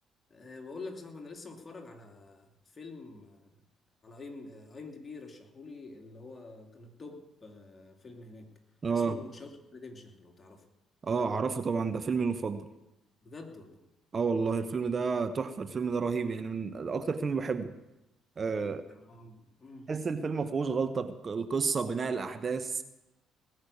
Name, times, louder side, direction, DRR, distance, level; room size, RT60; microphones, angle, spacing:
voice 1, 0.3-3.6 4.0-8.5 8.9-10.7 13.2-13.8 18.8-19.9, left 3 dB, 35° left, 2 dB, 2.8 m, -47 dB
voice 2, 8.8-9.2 11.0-12.7 14.1-17.7 18.4-18.8 19.9-22.8, right 5 dB, 40° right, 10 dB, 1.0 m, -30 dB
19.0 x 6.5 x 8.6 m, 0.92 s
hypercardioid pair, 50°, 0 cm